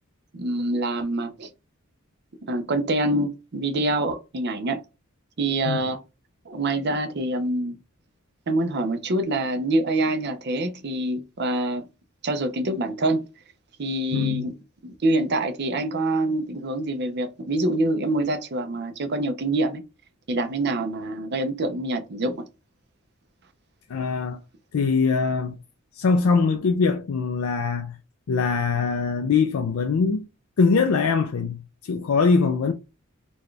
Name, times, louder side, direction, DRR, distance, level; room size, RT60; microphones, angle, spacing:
voice 1, 0.3-1.5 2.4-4.8 5.4-6.0 6.5-7.8 8.5-11.8 12.2-13.2 13.8-14.5 14.8-19.8 20.3-22.4, right 2 dB, 50° right, 0.6 m, -25 dB
voice 2, 14.1-14.5 23.9-24.4 24.7-25.6 26.0-28.0 28.3-30.2 30.6-32.7, left 4 dB, 90° left, 0.4 m, -22 dB
4.1 x 2.3 x 3.2 m
head